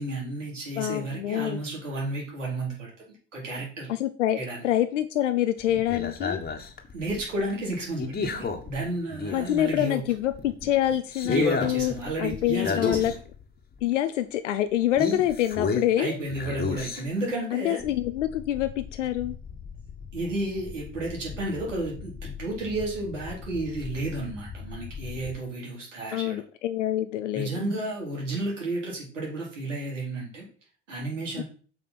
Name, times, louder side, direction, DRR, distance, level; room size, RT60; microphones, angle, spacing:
voice 1, 0.0-3.9 4.4-4.6 6.9-10.0 11.2-13.1 16.0-17.8 20.1-26.4 27.3-30.4 30.9-31.4, right 2 dB, 85° right, -2 dB, 3.8 m, -32 dB
voice 2, 0.8-1.6 3.9-4.4 4.6-6.4 9.3-11.9 12.2-13.1 13.8-16.2 17.5-19.4 26.1-27.5 31.4-31.5, left 13 dB, 75° left, 10 dB, 0.7 m, -26 dB
sound 1, 5.6-9.8 10.2-13.4 13.8-13.9 15.0-16.0 16.3-17.3 17.8-25.4, left 5 dB, 25° left, 1.6 m, -34 dB
7.9 x 5.0 x 5.9 m, 0.41 s
figure-of-eight pair, 65°, 36 cm